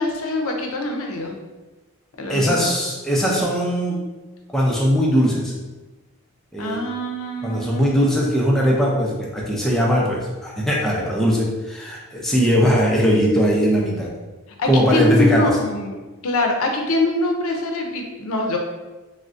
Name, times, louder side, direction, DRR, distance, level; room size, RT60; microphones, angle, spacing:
voice 1, 0.0-1.3 2.2-2.7 6.6-8.1 14.6-15.9 16.2-18.6, left 2 dB, 90° left, 2 dB, 0.5 m, -23 dB
voice 2, 2.3-4.0 4.5-5.5 6.5-6.8 7.4-14.1 14.7-15.5, equal, ahead, -4 dB, 0.4 m, -20 dB
3.5 x 2.1 x 2.4 m, 1.2 s
head